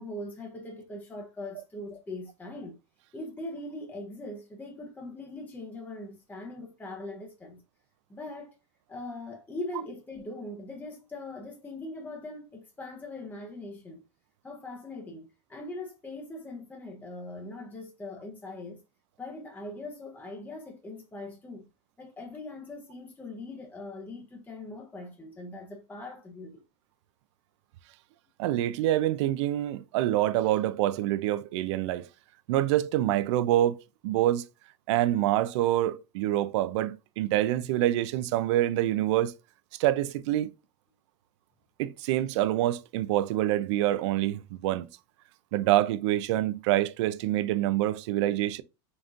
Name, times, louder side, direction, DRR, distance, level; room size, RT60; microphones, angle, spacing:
voice 1, 0.0-2.8 3.1-7.6 8.1-8.5 8.9-14.0 14.4-18.8 19.2-21.7 22.0-26.6, left 2 dB, 10° left, 0.7 m, -41 dB
voice 2, 28.4-32.1 32.5-34.4 34.9-39.3 39.8-40.5 41.8-44.9 45.5-48.6, right 14 dB, 70° right, 0.4 m, -26 dB
3.9 x 3.6 x 2.4 m
supercardioid pair, 130°, 15 cm